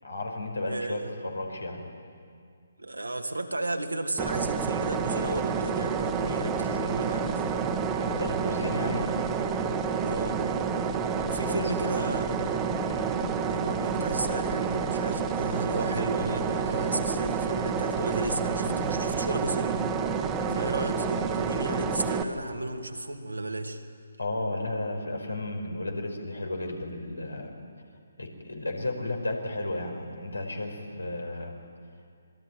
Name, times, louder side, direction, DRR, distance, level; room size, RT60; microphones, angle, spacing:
voice 1, 0.0-1.8 8.0-9.1 11.4-11.7 12.8-13.2 24.2-27.6 28.2-31.5, left 2 dB, 85° left, 3 dB, 5.1 m, -33 dB
voice 2, 0.7-1.1 2.8-7.5 10.0-10.4 11.2-12.7 13.5-19.9 20.5-23.8, right 2 dB, 85° right, 4 dB, 2.4 m, -34 dB
sound 1, 4.2-22.2, right 5 dB, 15° right, 1.6 m, -29 dB
26.5 x 21.5 x 9.2 m, 2.2 s
figure-of-eight pair, 140°, 0 cm